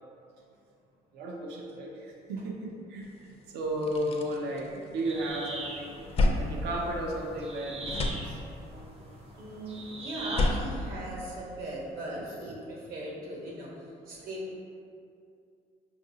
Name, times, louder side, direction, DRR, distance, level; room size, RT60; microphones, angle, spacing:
voice 1, 1.1-8.4 12.1-12.6, right 1 dB, 75° right, -1 dB, 0.6 m, -35 dB
sound 1, 3.2-3.3 3.6-5.3 5.7-7.5 7.8-8.8 10.1-11.8, left 2 dB, 35° left, 0.4 m, -31 dB
sound 2, 5.0-10.6, right 2 dB, 35° right, 0.6 m, -42 dB
voice 2, 9.4-14.4, right 1 dB, 60° right, -4 dB, 1.1 m, -38 dB
5.3 x 2.6 x 2.7 m, 2.5 s
cardioid pair, 110°, 17 cm